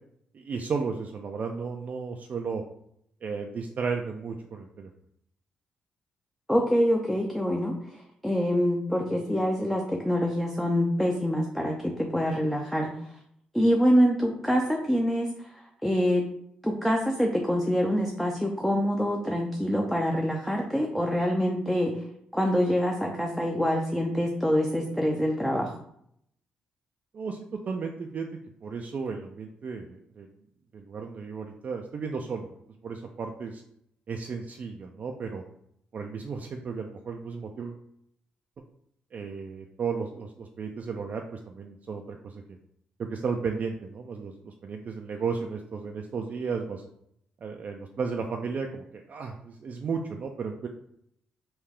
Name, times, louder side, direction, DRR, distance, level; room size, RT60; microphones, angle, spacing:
voice 1, 0.3-2.6 3.2-4.9 27.1-28.3 28.6-30.3 30.7-32.5 32.8-33.6 34.1-35.4 35.9-37.8 39.1-42.6 43.0-46.8 47.4-50.7, right 5 dB, 50° right, 3 dB, 0.4 m, -34 dB
voice 2, 6.5-12.9 13.5-16.3 16.6-22.0 22.3-25.8, equal, 5° left, 1 dB, 0.5 m, -25 dB
3.3 x 2.3 x 3.5 m, 0.73 s
supercardioid pair, 50°, 3 cm